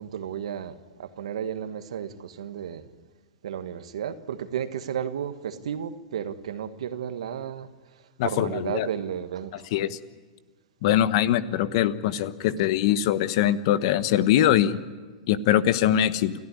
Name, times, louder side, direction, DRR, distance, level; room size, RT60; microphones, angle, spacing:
voice 1, 0.0-2.9 3.4-9.7, right 9 dB, 75° right, 1.5 m, -33 dB
voice 2, 8.2-8.9 9.7-10.0 10.8-14.8 15.3-16.3, left 11 dB, 60° left, 1.2 m, -22 dB
29.0 x 13.5 x 9.8 m
hypercardioid pair, 110°, 3 cm